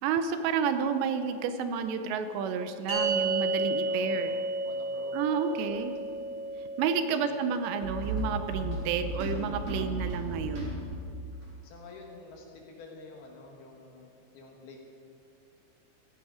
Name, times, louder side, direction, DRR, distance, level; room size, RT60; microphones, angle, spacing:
voice 1, 0.0-4.4 5.1-5.9 6.8-10.8, right 6 dB, 80° right, 9 dB, 2.8 m, -30 dB
sound 1, 2.9-9.4, right 2 dB, 5° right, 3.3 m, -33 dB
voice 2, 3.9-5.9 7.2-7.5 7.8-8.0 11.6-14.8, left 3 dB, 65° left, 1 dB, 2.9 m, -49 dB
sound 2, 5.6-5.9 7.8-11.4, right 1 dB, 30° right, 3.8 m, -35 dB
16.0 x 14.0 x 5.0 m, 2.5 s
omnidirectional pair, 5.3 m